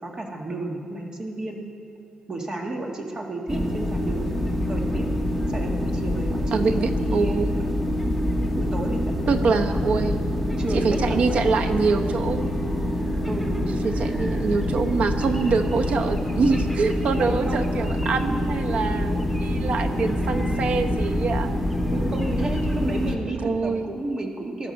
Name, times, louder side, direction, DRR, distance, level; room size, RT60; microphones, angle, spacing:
voice 1, 0.0-1.6 2.3-4.3 4.7-5.1 5.5-7.3 8.6-9.0 9.4-9.5 10.6-12.1 13.3-13.8 17.3-17.6 21.9-24.7, right 2 dB, 30° right, 1 dB, 1.8 m, -32 dB
sound 1, 3.5-23.2, left 1 dB, 5° right, 1.5 m, -26 dB
voice 2, 6.5-7.5 9.3-10.3 10.7-12.5 13.6-21.5 23.2-23.9, right 4 dB, 60° right, 6 dB, 1.0 m, -25 dB
19.5 x 12.0 x 5.4 m, 2.4 s
wide cardioid pair, 155°, 2 cm